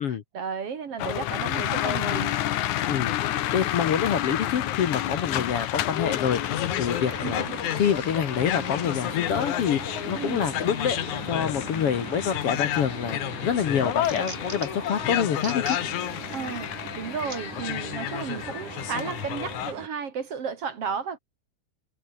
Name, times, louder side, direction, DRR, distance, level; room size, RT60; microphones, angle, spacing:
voice 1, 0.0-2.4 7.1-7.8 10.1-10.4 16.3-16.7 17.0-21.2, right 6 dB, 50° right, 2.7 m, -33 dB
sound 1, 1.0-19.7, left 12 dB, 70° left, 2.5 m, -30 dB
voice 2, 2.9-3.2 3.5-7.5 7.8-11.0 11.2-15.8, left 8 dB, 55° left, 2.0 m, -27 dB
sound 2, 6.0-19.9, right 6 dB, 70° right, 4.9 m, -41 dB
sound 3, 12.8-13.2 13.6-14.9 15.3-15.8 16.3-16.4 17.3-17.4 18.2-18.3, right 3 dB, 20° right, 3.0 m, -40 dB
omnidirectional pair, 3.7 m